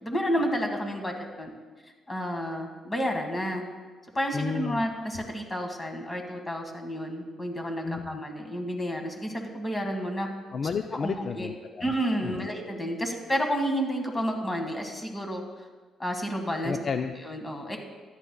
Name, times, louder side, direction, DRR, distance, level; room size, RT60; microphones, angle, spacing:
voice 1, 0.0-1.5 2.1-3.6 4.1-10.3 11.0-11.5 11.8-15.4 16.0-16.8 17.2-17.8, equal, 20° left, 3 dB, 1.8 m, -30 dB
voice 2, 4.3-4.8 7.8-8.2 10.5-11.9 12.2-12.5 16.6-17.1, left 5 dB, 50° left, 8 dB, 0.4 m, -32 dB
14.0 x 11.0 x 2.3 m, 1.4 s
cardioid pair, 90°, 0 cm